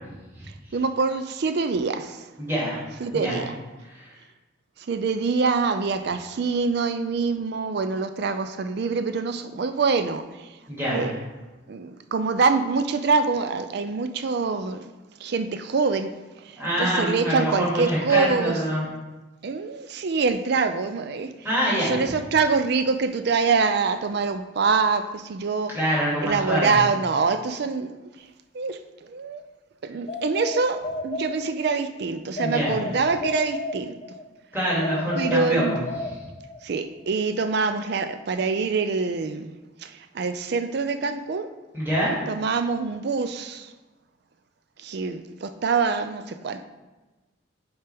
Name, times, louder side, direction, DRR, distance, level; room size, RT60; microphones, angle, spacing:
voice 1, 0.7-2.2 3.0-3.5 4.9-10.5 10.9-11.1 11.7-14.9 15.2-16.1 16.4-18.6 19.4-21.3 21.7-25.8 26.2-27.9 28.5-29.4 29.8-34.0 35.2-35.8 36.6-39.5 39.8-41.5 42.3-43.7 44.8-46.6, right 4 dB, 55° right, 9 dB, 0.4 m, -25 dB
voice 2, 2.4-3.4 3.9-4.1 10.7-11.1 16.6-18.8 21.4-22.0 25.7-26.7 32.4-32.8 34.5-35.8 36.0-36.2 41.7-42.1, equal, 10° right, -8 dB, 2.4 m, -25 dB
sound 1, 30.1-31.8 32.4-34.3 34.8-36.7, left 2 dB, 35° left, 0.4 m, -33 dB
10.0 x 4.4 x 3.5 m, 1.2 s
head